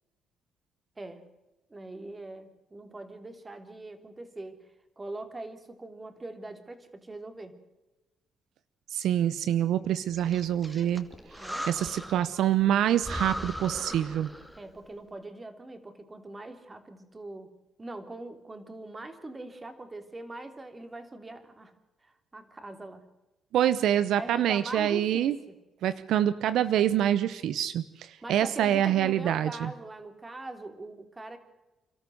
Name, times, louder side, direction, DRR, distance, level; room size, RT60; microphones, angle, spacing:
voice 1, 1.7-4.6 5.0-7.6 11.4-11.7 14.6-17.5 17.8-21.7 22.0-23.0 24.2-25.6 28.2-31.4, right 2 dB, 20° right, 8 dB, 3.3 m, -42 dB
voice 2, 8.9-11.1 11.7-14.3 23.5-25.4 25.8-29.7, right 11 dB, 80° right, 14 dB, 0.9 m, -26 dB
Breathing, 10.1-12.3 12.7-12.8 13.0-14.7, equal, 5° right, 2.6 m, -38 dB
29.0 x 13.0 x 7.9 m, 1.1 s
cardioid pair, 90°, 0 cm